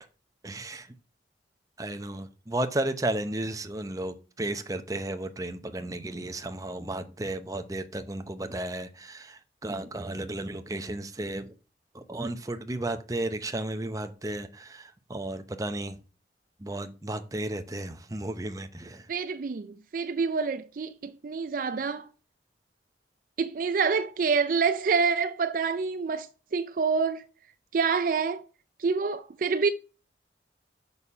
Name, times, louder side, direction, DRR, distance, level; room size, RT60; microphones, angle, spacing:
voice 1, 0.4-1.0 1.8-11.5 11.9-16.0 16.6-19.1, right 1 dB, 20° right, 0.7 m, -34 dB
voice 2, 19.1-22.1 23.4-26.3 26.5-27.2 27.7-28.4 28.8-29.7, right 5 dB, 50° right, 0.4 m, -27 dB
6.5 x 5.6 x 5.5 m
head